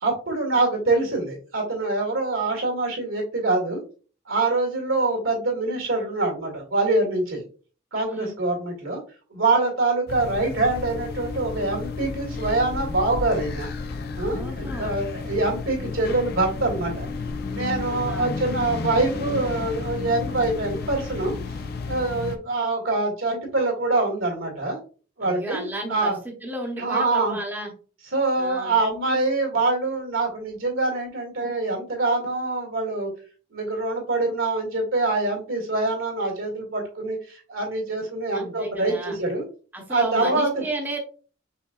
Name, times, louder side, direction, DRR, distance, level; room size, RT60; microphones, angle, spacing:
voice 1, 0.0-3.8 4.3-7.4 7.9-9.0 9.3-13.7 14.2-17.1 17.5-21.6 21.9-24.8 25.2-26.2 26.8-27.4 28.1-33.1 33.5-39.4 39.9-40.6, right 2 dB, 85° right, 1 dB, 1.9 m, -25 dB
voice 2, 8.0-8.4 14.3-15.0 17.8-18.4 25.2-27.7 28.4-28.8 38.3-39.2 39.7-41.0, right 1 dB, 10° right, 1 dB, 0.7 m, -33 dB
sound 1, 10.1-22.4, left 4 dB, 50° left, 0.4 m, -32 dB
5.5 x 3.6 x 2.3 m, 0.38 s
head